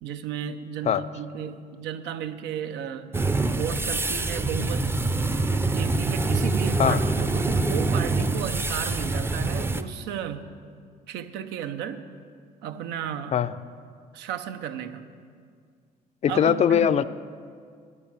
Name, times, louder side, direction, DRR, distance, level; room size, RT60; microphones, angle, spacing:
voice 1, 0.0-3.1 3.5-4.9 5.6-10.5 11.1-12.1 12.6-13.4 14.1-15.0 16.3-16.9, right 9 dB, 90° right, 9 dB, 0.8 m, -34 dB
sound 1, 3.1-9.8, right 3 dB, 15° right, 0.5 m, -25 dB
voice 2, 16.2-17.1, left 9 dB, 40° left, 15 dB, 0.4 m, -21 dB
9.6 x 9.5 x 7.4 m, 2.1 s
cardioid pair, 110°, 17 cm